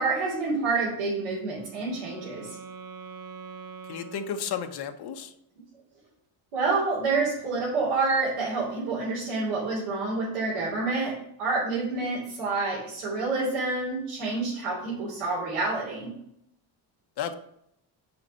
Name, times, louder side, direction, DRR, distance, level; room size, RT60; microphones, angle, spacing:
voice 1, 0.0-2.5 6.5-16.1, right 3 dB, 80° right, -8 dB, 3.3 m, -28 dB
Wind instrument woodwind instrument, 1.1-5.1, right 6 dB, 40° right, 1.4 m, -44 dB
voice 2, 3.9-5.3 17.2-17.3, left 8 dB, 50° left, 7 dB, 0.9 m, -33 dB
6.8 x 5.3 x 5.5 m, 0.74 s
cardioid pair, 160°, 49 cm